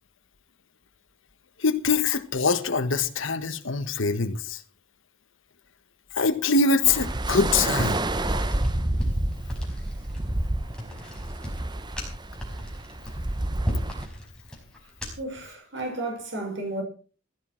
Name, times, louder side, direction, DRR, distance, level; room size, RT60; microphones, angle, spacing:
voice 1, 1.6-4.6 6.1-8.0, left 4 dB, 70° left, 1.4 m, -24 dB
sound 1, 6.8-14.1, right 1 dB, 20° right, 0.8 m, -29 dB
sound 2, 7.7-15.4, equal, 5° left, 5.1 m, -36 dB
voice 2, 15.2-16.8, right 2 dB, 60° right, 5.7 m, -32 dB
15.5 x 13.0 x 4.6 m
head